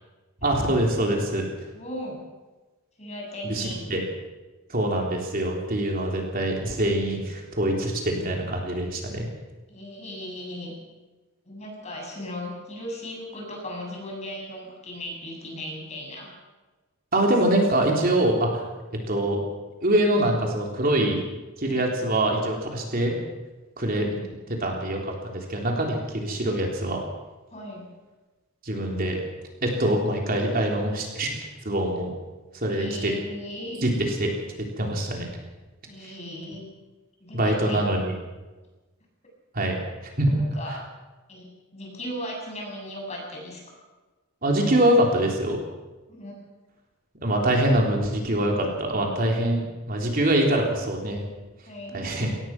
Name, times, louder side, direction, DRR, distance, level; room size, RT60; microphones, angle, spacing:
voice 1, 0.4-1.4 3.4-4.0 4.7-9.3 17.1-18.6 19.1-19.4 19.8-21.2 21.6-23.2 23.8-24.1 24.6-27.0 28.6-29.2 29.6-31.4 31.7-32.1 32.6-33.1 33.8-34.3 34.6-35.3 37.3-38.1 39.5-39.8 40.2-40.4 44.4-45.6 47.2-51.2 51.9-52.3, right 1 dB, 45° right, 0 dB, 3.6 m, -24 dB
voice 2, 1.7-2.2 3.0-3.8 9.7-10.8 11.5-16.3 21.7-21.9 23.8-24.3 27.5-27.9 32.7-33.8 35.9-36.7 37.2-37.9 40.3-40.8 41.3-43.6 46.1-46.3 51.7-52.1, left 1 dB, 30° left, 0 dB, 7.2 m, -37 dB
23.5 x 18.5 x 6.1 m, 1.2 s
head